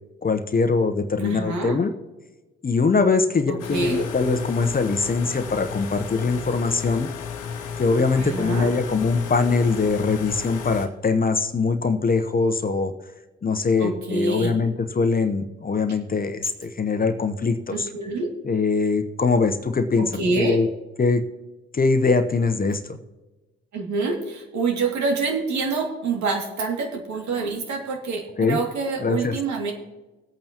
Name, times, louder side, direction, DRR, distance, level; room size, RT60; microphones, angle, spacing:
voice 1, 0.2-1.9 2.6-7.1 7.8-12.9 13.4-17.9 18.4-20.7 21.0-21.2 21.7-23.0 28.4-28.6 29.0-29.4, left 4 dB, 25° left, 9 dB, 0.9 m, -22 dB
voice 2, 1.2-1.7 3.5-4.0 8.1-8.7 13.8-14.5 17.8-18.3 20.2-20.6 23.7-29.7, right 3 dB, 60° right, 2 dB, 2.5 m, -26 dB
Air Conditioner, 3.6-10.9, left 6 dB, 70° left, 1.2 m, -33 dB
20.5 x 8.6 x 2.9 m, 1.2 s
hypercardioid pair, 50°, 33 cm